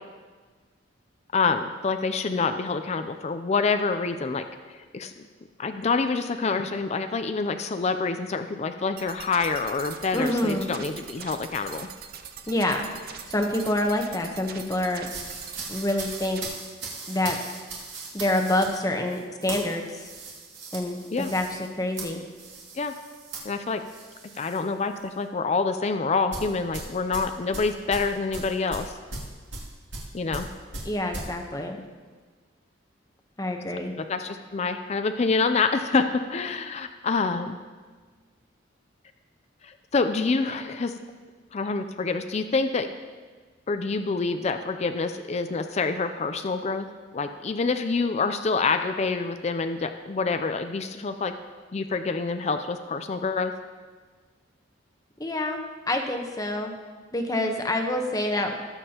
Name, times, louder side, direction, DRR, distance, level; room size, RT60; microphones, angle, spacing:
voice 1, 1.3-4.5 4.9-5.1 5.6-11.9 21.1-21.3 22.7-22.9 23.4-23.8 24.4-28.9 30.1-30.5 34.0-37.6 39.6-41.0 41.5-42.9 43.7-46.9 47.1-51.3 51.7-53.5, left 4 dB, 35° left, 8 dB, 0.4 m, -27 dB
sound 1, 9.0-16.5, right 7 dB, 50° right, 0.6 m, -42 dB
voice 2, 10.1-10.7 12.5-12.8 13.3-15.1 15.7-16.4 17.1-17.4 18.1-20.0 20.7-22.2 30.8-31.8 33.4-33.9 55.2-56.7 57.1-58.6, left 1 dB, 20° left, 3 dB, 0.9 m, -27 dB
sound 2, 15.0-24.6 25.0-25.2 26.3-31.3, right 3 dB, 65° right, 2.3 m, -39 dB
19.0 x 7.3 x 2.9 m, 1.5 s
head